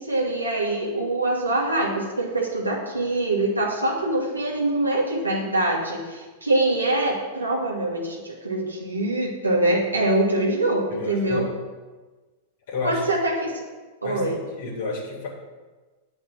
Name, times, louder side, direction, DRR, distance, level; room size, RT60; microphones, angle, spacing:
voice 1, 0.0-11.5 12.8-13.6 14.0-14.4, right 2 dB, 90° right, -3 dB, 1.6 m, -24 dB
voice 2, 10.9-11.4 12.7-13.0 14.0-15.3, left 4 dB, 60° left, -3 dB, 2.8 m, -31 dB
8.9 x 5.3 x 7.7 m, 1.3 s
figure-of-eight pair, 95°, 0 cm